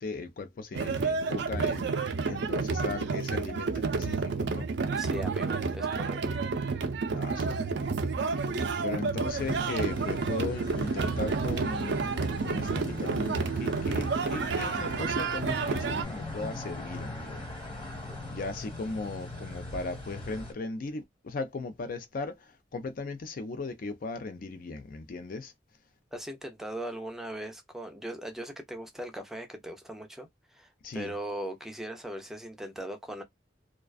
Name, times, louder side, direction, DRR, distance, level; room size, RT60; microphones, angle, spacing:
voice 1, 0.0-4.7 7.1-8.1 8.4-12.1 12.4-17.5 18.3-25.5 30.8-31.1, left 3 dB, 50° left, 0.4 m, -38 dB
sound 1, 0.7-16.0, right 4 dB, 65° right, 0.5 m, -30 dB
voice 2, 5.0-6.4 18.1-18.2 26.1-33.2, right 1 dB, ahead, 0.5 m, -39 dB
sound 2, 9.2-20.5, left 1 dB, 30° left, 1.1 m, -40 dB
2.4 x 2.2 x 2.3 m
head